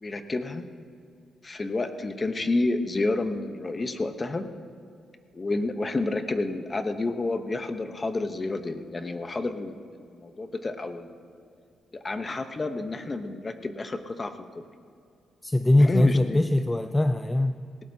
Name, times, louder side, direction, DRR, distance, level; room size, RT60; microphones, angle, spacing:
voice 1, 0.0-0.6 1.4-4.4 5.3-9.8 10.1-11.2 12.0-14.6 15.7-16.6, left 2 dB, 30° left, 8 dB, 1.0 m, -30 dB
voice 2, 15.4-17.6, left 1 dB, 10° left, 8 dB, 0.4 m, -21 dB
19.0 x 17.5 x 2.8 m, 2.4 s
cardioid pair, 105°, 0 cm